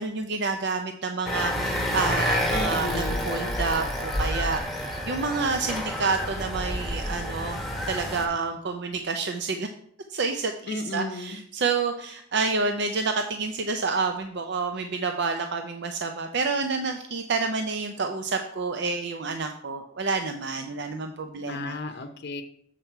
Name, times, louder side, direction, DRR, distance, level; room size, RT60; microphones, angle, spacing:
voice 1, 0.0-7.6 7.9-9.7 10.1-21.8, right 4 dB, 55° right, 6 dB, 0.5 m, -29 dB
sound 1, 1.3-8.3, equal, ahead, 1.2 m, -29 dB
voice 2, 2.5-3.2 10.7-11.4 21.4-22.4, left 2 dB, 55° left, 5 dB, 0.7 m, -33 dB
7.5 x 6.6 x 4.6 m, 0.68 s
head